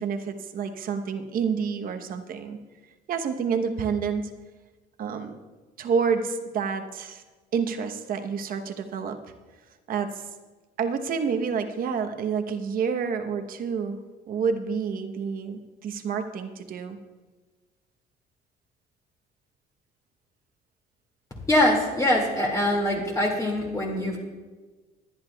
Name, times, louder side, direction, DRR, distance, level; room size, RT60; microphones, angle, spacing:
voice 1, 0.0-2.6 3.1-4.3 5.0-5.3 5.8-7.2 7.5-9.2 9.9-10.2 10.8-14.0 14.3-17.0, right 6 dB, 55° right, 6 dB, 1.0 m, -28 dB
voice 2, 21.5-24.2, left 1 dB, 20° left, -2 dB, 2.2 m, -23 dB
21.5 x 10.0 x 2.3 m, 1.3 s
cardioid pair, 110°, 17 cm